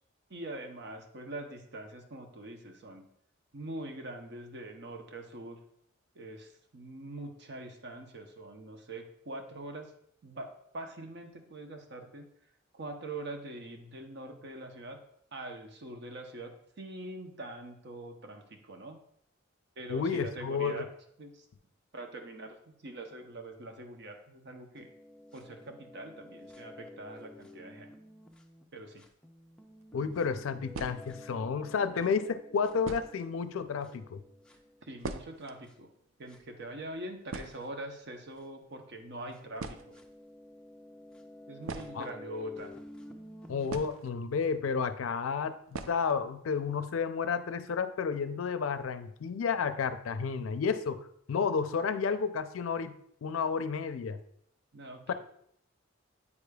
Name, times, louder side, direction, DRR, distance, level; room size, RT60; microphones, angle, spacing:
voice 1, 0.3-3.0 3.5-5.6 6.1-9.9 10.2-12.3 12.7-15.0 15.3-19.0 19.8-20.9 21.2-21.5 21.9-24.9 25.3-27.9 28.7-29.1 34.8-35.9 36.2-40.0 41.5-42.7 54.7-55.1, right 1 dB, 60° right, 4 dB, 0.8 m, -43 dB
voice 2, 19.9-20.8 29.9-34.2 41.9-42.1 43.5-51.0 51.3-54.2 55.1-55.2, left 5 dB, 80° left, 11 dB, 0.4 m, -31 dB
sound 1, 24.8-28.6 29.0-35.1 35.6-35.7 36.3-36.4 37.5-37.6 38.4-38.5 39.3-43.8, left 1 dB, 5° left, 0.4 m, -51 dB
sound 2, 29.7-29.8 30.7-31.4 32.2-32.3 32.8-33.4 33.6-33.7 34.0-34.2 34.5-35.6 35.9-36.0 36.3-36.5 36.9-37.0 37.3-38.2 39.1-39.2 39.6-40.1 41.6-42.7 43.7-44.5 44.8-44.9 45.7-46.2 46.5-46.6 47.0-47.1 47.5-47.8, right 4 dB, 80° right, 0.4 m, -42 dB
8.4 x 4.9 x 2.3 m, 0.69 s
head